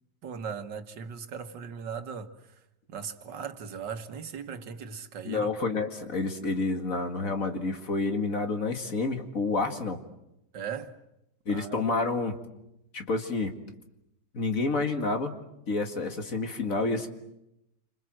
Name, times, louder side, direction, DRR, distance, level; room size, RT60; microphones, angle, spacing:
voice 1, 0.2-2.6 2.9-5.5 10.5-11.0 11.5-11.8, right 6 dB, 80° right, 2.1 m, -38 dB
voice 2, 5.3-10.0 11.5-12.4 12.9-13.6 14.3-15.4 15.7-17.1, left 3 dB, 50° left, 2.4 m, -29 dB
28.5 x 26.0 x 7.7 m
omnidirectional pair, 1.9 m